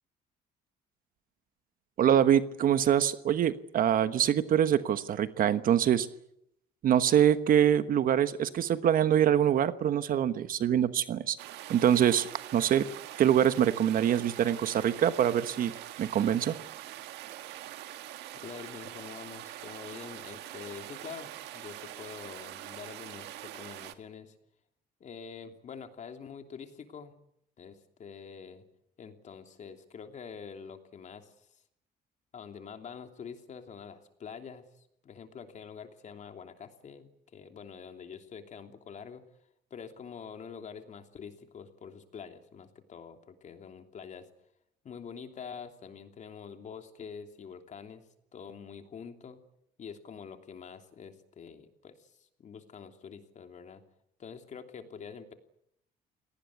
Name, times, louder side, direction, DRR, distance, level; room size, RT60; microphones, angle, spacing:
voice 1, 2.0-6.1 6.8-11.4 11.7-12.3 12.5-12.9 13.2-15.7 16.0-16.5, right 10 dB, 55° right, 12 dB, 1.2 m, -24 dB
sound 1, 11.4-23.9, right 14 dB, 85° right, 1.7 m, -44 dB
voice 2, 18.3-24.3 25.0-27.1 27.6-28.6 29.0-31.5 32.3-39.2 39.7-44.3 44.8-48.0 48.3-49.4 49.8-53.8 54.2-55.3, left 6 dB, 45° left, 6 dB, 3.1 m, -46 dB
28.0 x 19.0 x 8.5 m, 0.77 s
cardioid pair, 110°, 17 cm